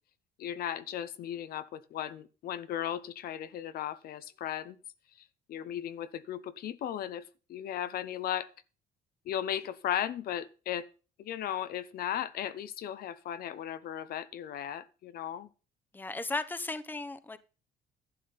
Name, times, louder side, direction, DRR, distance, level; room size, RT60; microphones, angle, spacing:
voice 1, 0.4-4.8 5.5-7.2 7.5-8.5 9.3-10.9 11.2-15.5, left 10 dB, 65° left, 0.7 m, -36 dB
voice 2, 15.9-17.4, left 2 dB, 10° left, 0.8 m, -35 dB
11.5 x 8.5 x 4.0 m
cardioid pair, 110°, 17 cm